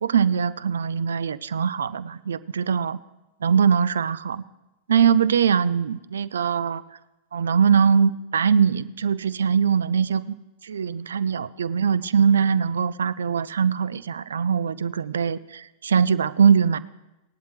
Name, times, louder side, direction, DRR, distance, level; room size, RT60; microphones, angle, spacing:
voice 1, 0.0-3.0 3.4-4.4 4.9-6.8 7.3-10.3 10.6-16.8, right 7 dB, 70° right, 18 dB, 0.3 m, -22 dB
17.0 x 11.0 x 3.3 m, 0.97 s
figure-of-eight pair, 90°, 0 cm